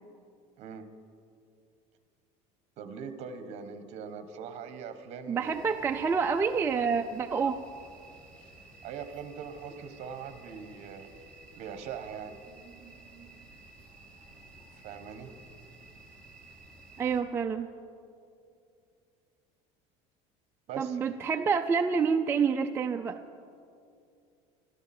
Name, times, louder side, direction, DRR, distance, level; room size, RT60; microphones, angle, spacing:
voice 1, 2.8-5.6 8.8-11.1 11.6-12.4 14.8-15.3 20.7-21.0, right 6 dB, 45° right, 9 dB, 1.3 m, -41 dB
voice 2, 5.3-7.6 17.0-17.7 20.8-23.2, right 5 dB, 15° right, 4 dB, 0.4 m, -28 dB
sound 1, 5.4-17.2, right 2 dB, 5° left, 2.2 m, -53 dB
25.0 x 13.0 x 4.4 m, 2.5 s
cardioid pair, 160°, 15 cm